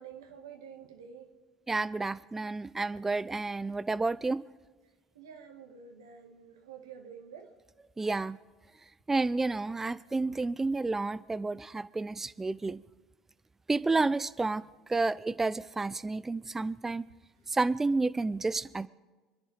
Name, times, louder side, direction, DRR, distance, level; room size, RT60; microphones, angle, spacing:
voice 1, 0.0-1.4 5.2-7.5 10.3-10.4, right 7 dB, 80° right, 4 dB, 1.8 m, -49 dB
voice 2, 1.7-4.4 8.0-8.4 9.1-12.8 13.7-14.6 14.9-17.1 17.5-18.9, right 3 dB, 15° right, 16 dB, 0.4 m, -30 dB
27.0 x 11.0 x 3.5 m, 1.3 s
hypercardioid pair, 70°, 2 cm